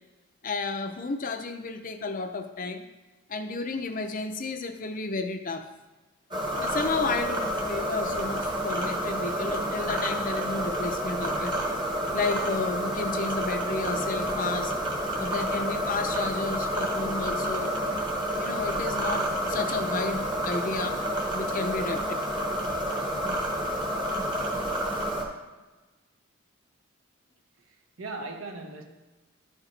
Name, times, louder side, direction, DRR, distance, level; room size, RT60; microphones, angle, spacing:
voice 1, 0.4-2.9 3.3-5.7 6.6-11.5 12.1-14.7 15.2-17.8 18.4-21.0 21.3-22.1, left 3 dB, 40° left, 0.5 m, -32 dB
sound 1, 6.3-25.2, right 1 dB, 25° right, 1.0 m, -29 dB
voice 2, 27.6-28.8, right 3 dB, 80° right, 1.1 m, -39 dB
12.0 x 4.8 x 3.3 m
head